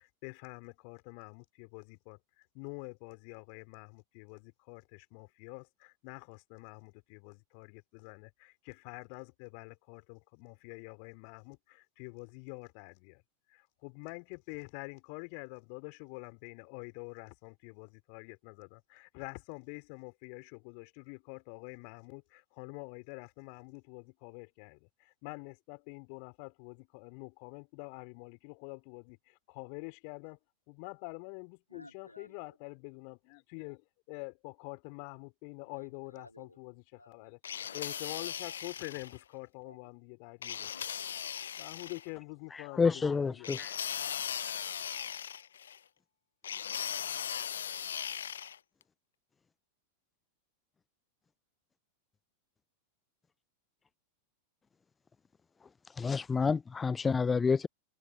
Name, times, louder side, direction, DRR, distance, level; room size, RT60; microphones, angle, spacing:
voice 1, 0.0-13.2 13.5-30.4 30.7-40.9 41.6-43.5, left 40 dB or more, 45° left, 4.1 m, -47 dB
voice 2, 31.7-32.4 35.6-36.6 37.0-37.8 38.3-38.4 39.6-39.9 40.6-41.5 46.5-46.9, left 1 dB, 85° left, 3.6 m, -57 dB
sound 1, 37.4-39.2 40.4-42.1 43.4-45.8 46.4-48.6, left 8 dB, 65° left, 0.8 m, -38 dB
voice 3, 42.8-43.7 56.0-57.7, left 5 dB, 15° left, 0.4 m, -28 dB
open air
figure-of-eight pair, 90°, 0 cm